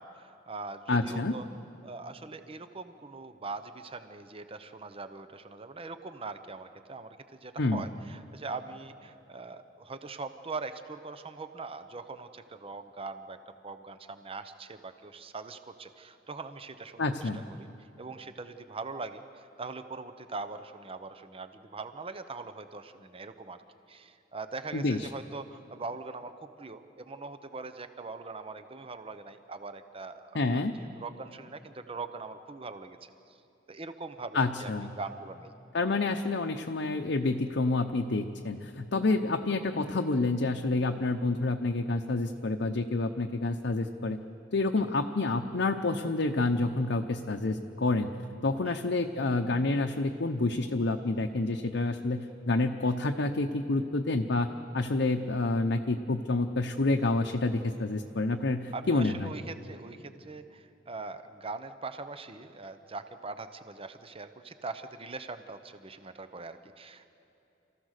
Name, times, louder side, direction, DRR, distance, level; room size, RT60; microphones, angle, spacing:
voice 1, 0.0-1.5 1.8-13.4 13.6-17.7 18.0-23.6 23.9-33.1 33.7-35.5 44.8-44.9 48.7-48.8 58.7-67.1, right 3 dB, 30° right, 10 dB, 0.8 m, -42 dB
voice 2, 0.9-1.3 7.6-7.8 17.0-17.4 24.7-25.1 30.3-30.7 34.3-34.9 35.7-44.2 44.5-48.1 48.4-54.5 54.7-59.3, left 2 dB, 65° left, 4 dB, 0.8 m, -28 dB
27.0 x 15.0 x 6.6 m, 2.9 s
head